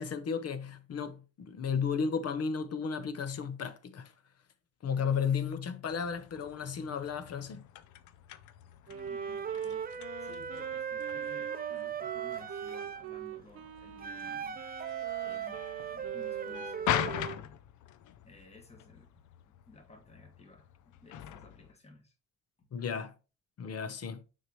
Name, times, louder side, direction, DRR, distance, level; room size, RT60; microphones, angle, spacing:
voice 1, 0.0-4.1 4.8-7.7 22.7-23.1 23.6-24.2, left 6 dB, 55° left, 0.9 m, -34 dB
sound 1, 5.9-21.7, left 11 dB, 75° left, 0.5 m, -42 dB
voice 2, 8.9-17.6 18.2-19.1 19.7-20.7 21.0-22.1 22.6-22.7, left 3 dB, 20° left, 1.6 m, -56 dB
Wind instrument woodwind instrument, 8.9-17.1, right 8 dB, 50° right, 0.9 m, -45 dB
Wind instrument woodwind instrument 2, 9.0-13.1 14.0-17.4, right 8 dB, 30° right, 0.5 m, -38 dB
6.4 x 4.9 x 3.0 m
cardioid pair, 90°, 30 cm